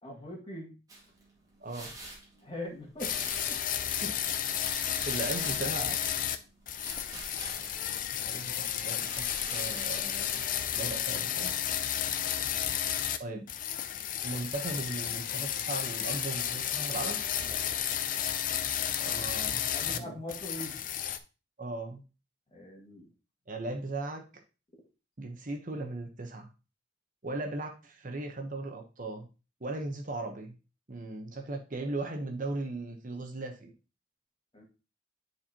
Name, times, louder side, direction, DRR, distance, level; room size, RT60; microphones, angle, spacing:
voice 1, 0.0-0.7 2.4-3.2 3.5-3.6 17.4-17.6 19.7-20.8 22.5-23.1 34.5-34.6, left 1 dB, 30° left, -1 dB, 2.0 m, -41 dB
sound 1, 0.9-10.9, right 2 dB, 20° right, 2.3 m, -48 dB
voice 2, 1.6-1.9 3.9-4.1 5.1-6.0 8.3-10.4 10.7-11.5 13.2-13.5 14.2-17.2 19.0-20.1 21.6-22.0 23.5-24.2 25.2-26.5 27.2-29.3 29.6-30.6 30.9-33.7, right 2 dB, 45° right, 3 dB, 1.0 m, -37 dB
sound 2, 3.0-6.4 6.7-13.2 13.5-20.0 20.3-21.2, left 10 dB, 45° left, 0.5 m, -32 dB
9.5 x 4.5 x 2.9 m, 0.31 s
head